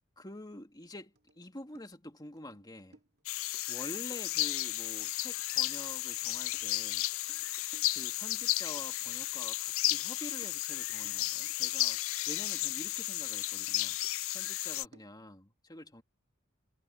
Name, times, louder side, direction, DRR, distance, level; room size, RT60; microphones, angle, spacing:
voice 1, 0.2-3.0 3.7-7.1 7.9-12.0 12.3-14.0 14.3-16.0, left 1 dB, 20° left, 2.7 m, -47 dB
sound 1, 1.2-13.3 13.7-15.3, right 2 dB, 50° right, 2.7 m, -64 dB
sound 2, 3.3-14.9, left 17 dB, 70° left, 0.4 m, -33 dB
head